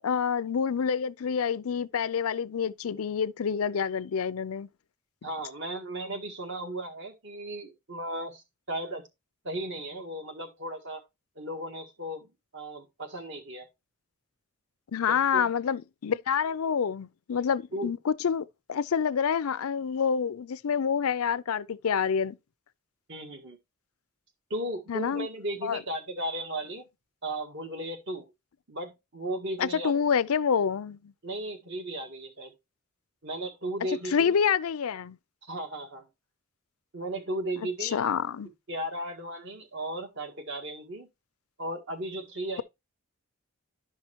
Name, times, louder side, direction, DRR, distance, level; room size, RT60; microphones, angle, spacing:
voice 1, 0.0-4.7 14.9-22.4 24.9-25.3 25.6-25.8 29.6-31.0 34.1-35.2 37.8-38.5, left 7 dB, 80° left, 0.5 m, -27 dB
voice 2, 5.2-9.0 9.4-11.0 11.4-13.7 15.1-15.5 17.7-17.9 23.1-23.6 24.5-26.8 27.2-28.3 28.7-30.0 31.2-32.5 33.2-34.4 35.4-36.0 36.9-38.0 38.7-41.1 41.6-42.6, right 1 dB, 55° right, 1.8 m, -35 dB
11.5 x 5.6 x 2.9 m
head